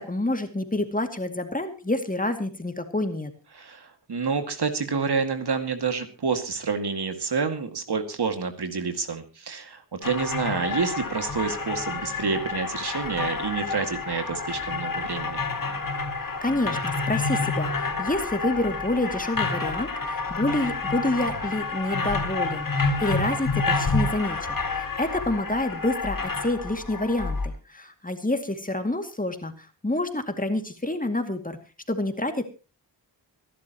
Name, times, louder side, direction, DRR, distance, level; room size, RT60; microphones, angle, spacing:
voice 1, 0.0-3.3 16.4-31.6 31.9-32.4, left 1 dB, 20° left, 6 dB, 2.4 m, -28 dB
voice 2, 3.5-15.4, right 5 dB, 60° right, 7 dB, 2.2 m, -28 dB
sound 1, 10.0-27.5, left 3 dB, 50° left, 4.1 m, -29 dB
25.5 x 12.0 x 3.0 m, 0.32 s
wide cardioid pair, 80°, 44 cm